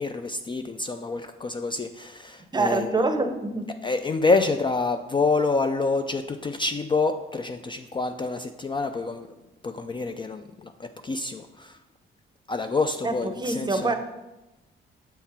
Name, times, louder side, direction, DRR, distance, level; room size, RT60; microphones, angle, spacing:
voice 1, 0.0-2.9 3.8-9.3 9.6-11.7 12.5-13.9, left 3 dB, 25° left, 7 dB, 0.3 m, -27 dB
voice 2, 2.5-3.7 13.0-13.9, right 2 dB, 20° right, 7 dB, 0.7 m, -25 dB
7.2 x 3.7 x 4.3 m, 1.0 s
cardioid pair, 90°, 20 cm